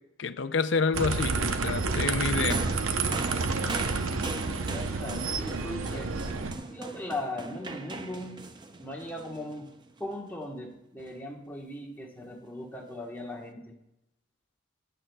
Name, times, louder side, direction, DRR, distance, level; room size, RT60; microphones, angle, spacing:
voice 1, 0.2-1.4 1.6-2.6, left 4 dB, 60° left, 12 dB, 0.5 m, -28 dB
sound 1, 0.9-6.5, right 4 dB, 85° right, 0.8 m, -29 dB
sound 2, 2.5-10.0 11.0-11.1, right 2 dB, 20° right, 0.5 m, -40 dB
voice 2, 4.3-6.1 6.7-8.4 8.8-9.7 10.0-13.8, left 1 dB, 10° left, -1 dB, 1.3 m, -39 dB
15.0 x 9.0 x 2.3 m, 0.84 s
head